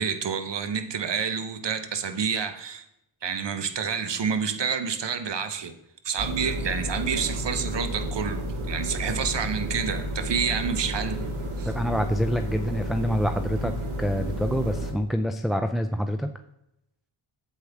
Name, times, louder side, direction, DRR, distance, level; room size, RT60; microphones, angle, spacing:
voice 1, 0.0-2.9 3.2-5.7 6.0-11.2 11.6-11.7, right 6 dB, 60° right, 10 dB, 1.0 m, -28 dB
sound 1, 6.2-14.9, equal, 80° right, 1.7 m, -31 dB
voice 2, 11.7-13.7 14.0-16.3, equal, ahead, 6 dB, 0.4 m, -26 dB
8.2 x 7.7 x 3.5 m, 0.83 s
cardioid pair, 65°, 49 cm